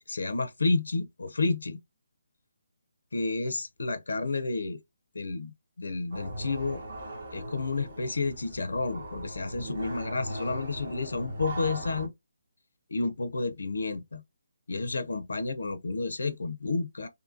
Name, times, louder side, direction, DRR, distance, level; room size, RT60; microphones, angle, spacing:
voice 1, 0.1-1.8 3.1-4.8 5.1-6.8 7.3-12.1 12.9-14.2 14.7-17.1, left 3 dB, 80° left, 0.4 m, -31 dB
sound 1, 6.1-12.1, right 1 dB, 55° right, 0.9 m, -39 dB
2.6 x 2.4 x 2.5 m
hypercardioid pair, 160°, 0 cm